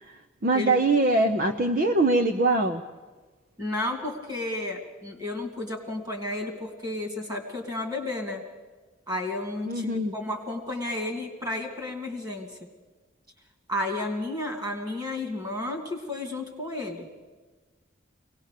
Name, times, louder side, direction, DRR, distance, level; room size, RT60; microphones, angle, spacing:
voice 1, 0.0-2.8 9.7-10.1, right 2 dB, 45° right, 5 dB, 0.7 m, -23 dB
voice 2, 3.6-8.4 9.1-12.7 13.7-17.1, left 1 dB, 20° right, 4 dB, 2.5 m, -32 dB
23.0 x 18.5 x 6.7 m, 1.3 s
head